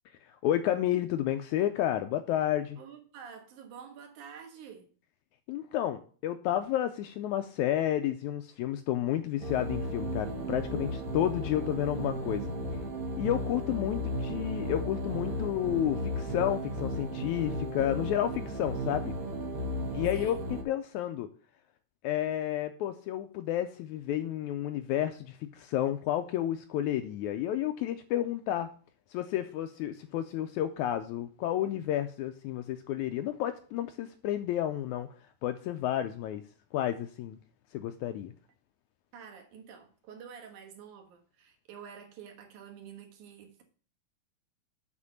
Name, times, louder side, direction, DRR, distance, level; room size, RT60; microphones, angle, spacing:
voice 1, 0.4-2.8 5.5-12.5 13.2-19.1 19.9-21.3 22.0-28.7 29.1-35.1 35.4-36.4 36.7-37.4 37.7-38.3, left 12 dB, 80° left, 1.7 m, -31 dB
voice 2, 2.8-4.9 20.1-20.4 39.1-43.6, right 7 dB, 70° right, 2.7 m, -48 dB
sound 1, 9.4-20.6, equal, 55° right, 0.9 m, -35 dB
7.4 x 4.4 x 6.9 m
omnidirectional pair, 3.8 m